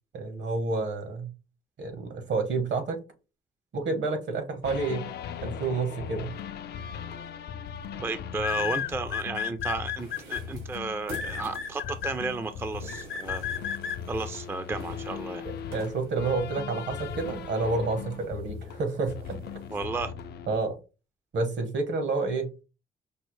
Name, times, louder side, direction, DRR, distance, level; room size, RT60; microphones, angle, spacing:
voice 1, 0.1-1.3 1.8-3.0 3.7-5.0 5.4-6.3 15.4-19.4 20.5-20.8 21.3-22.5, right 3 dB, 65° right, 7 dB, 1.1 m, -29 dB
sound 1, 4.6-20.6, left 7 dB, 55° left, 0.4 m, -39 dB
sound 2, 6.9-7.2 8.4-10.4 11.1-12.1 12.9-14.0, left 10 dB, 90° left, 0.8 m, -32 dB
voice 2, 8.0-13.4 14.1-15.5 19.7-20.1, right 3 dB, 10° right, 10 dB, 0.3 m, -33 dB
sound 3, 10.0-19.7, right 1 dB, 80° right, 2.0 m, -49 dB
5.3 x 2.0 x 3.1 m, 0.30 s
cardioid pair, 90°, 20 cm